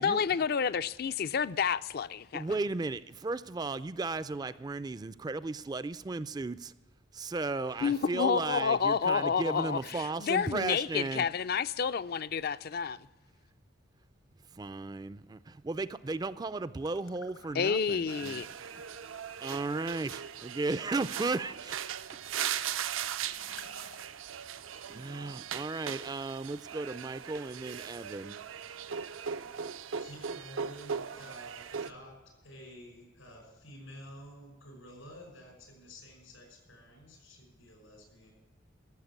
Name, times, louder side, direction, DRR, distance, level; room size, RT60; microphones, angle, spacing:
voice 1, 0.0-2.4 7.8-13.0 17.5-18.5, left 6 dB, 50° left, 0.4 m, -29 dB
voice 2, 2.3-6.7 7.1-11.3 14.5-18.8 19.4-21.8 24.9-28.4, right 3 dB, 20° right, 0.3 m, -35 dB
sound 1, 16.8-17.9 18.3-24.3, left 5 dB, 75° left, 1.2 m, -56 dB
sound 2, 18.1-31.9, right 8 dB, 80° right, 0.5 m, -39 dB
voice 3, 30.0-38.3, equal, 90° left, 5.3 m, -51 dB
14.0 x 7.2 x 8.1 m
head